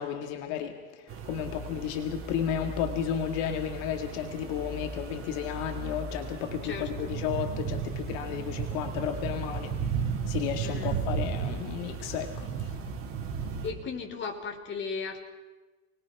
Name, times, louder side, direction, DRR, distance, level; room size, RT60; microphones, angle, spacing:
voice 1, 0.0-9.7 10.3-12.8, left 9 dB, 65° left, 5 dB, 2.0 m, -33 dB
sound 1, 1.1-13.7, right 6 dB, 35° right, 3.6 m, -35 dB
voice 2, 6.6-7.1 10.6-11.0 13.6-15.2, left 5 dB, 30° left, 4 dB, 3.8 m, -36 dB
29.0 x 21.0 x 6.0 m, 1.2 s
supercardioid pair, 140°, 38 cm